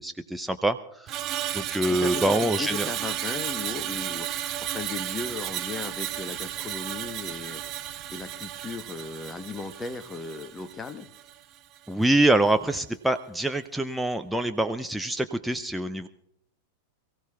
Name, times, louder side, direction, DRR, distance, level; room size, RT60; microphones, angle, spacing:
voice 1, 0.0-2.9 11.9-16.1, right 1 dB, 5° right, 7 dB, 0.6 m, -25 dB
Screech, 1.1-11.4 11.8-12.0, right 12 dB, 35° right, 0.8 m, -33 dB
voice 2, 1.9-7.6 8.1-11.1, left 4 dB, 15° left, 8 dB, 1.1 m, -37 dB
27.0 x 16.0 x 2.4 m, 0.79 s
figure-of-eight pair, 90°, 0 cm